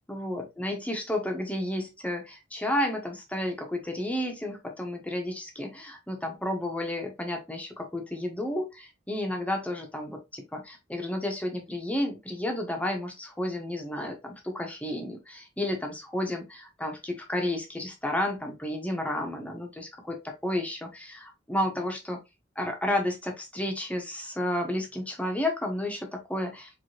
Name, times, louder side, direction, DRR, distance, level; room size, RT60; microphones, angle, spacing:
voice 1, 0.1-22.2 22.6-26.7, left 1 dB, 5° left, 3 dB, 1.1 m, -32 dB
4.9 x 3.6 x 2.9 m, 0.22 s
head